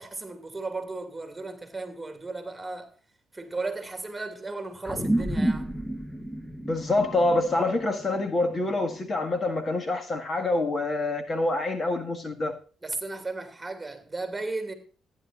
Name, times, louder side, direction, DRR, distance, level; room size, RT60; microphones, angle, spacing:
voice 1, 0.0-2.9 3.3-5.7 12.8-14.7, right 3 dB, 15° right, 2.6 m, -35 dB
sound 1, 4.9-9.6, right 1 dB, 5° left, 1.4 m, -31 dB
voice 2, 6.7-12.6, left 2 dB, 40° left, 1.8 m, -26 dB
15.0 x 10.0 x 2.5 m
cardioid pair, 90°, 0 cm